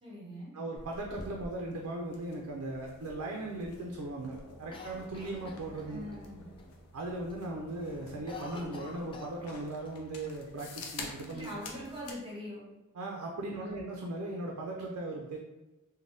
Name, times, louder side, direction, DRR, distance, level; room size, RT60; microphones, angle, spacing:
voice 1, 0.0-0.5 5.9-6.5 11.3-12.7 13.5-13.8, left 1 dB, 25° right, -6 dB, 1.0 m, -43 dB
voice 2, 0.5-6.0 6.9-11.5 12.9-15.4, right 2 dB, 85° right, -1 dB, 0.4 m, -38 dB
sound 1, 0.8-12.2, left 3 dB, 90° left, 0.5 m, -49 dB
Cough, 4.7-6.2 6.6-6.7 7.0-7.4 7.7-10.0 10.2-10.3 11.1-11.9, left 3 dB, 25° left, 0.3 m, -48 dB
3.3 x 2.2 x 2.6 m, 1.1 s
head